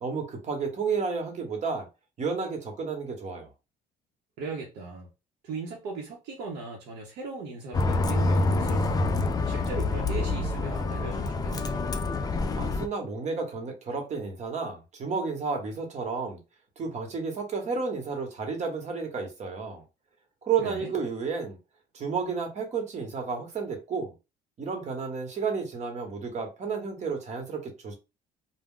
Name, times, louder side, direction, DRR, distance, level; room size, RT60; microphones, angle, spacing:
voice 1, 0.0-1.9 2.2-3.5 12.6-16.4 16.8-19.8 20.4-21.6 21.9-24.1 24.6-27.9, right 5 dB, 45° right, 1.0 m, -31 dB
voice 2, 4.4-5.1 5.4-9.1 9.5-11.8 20.6-20.9, right 3 dB, 80° right, 0.7 m, -38 dB
Bus, 7.7-12.9, left 2 dB, 25° left, 0.3 m, -27 dB
2.3 x 2.0 x 3.6 m
cardioid pair, 110°, 17 cm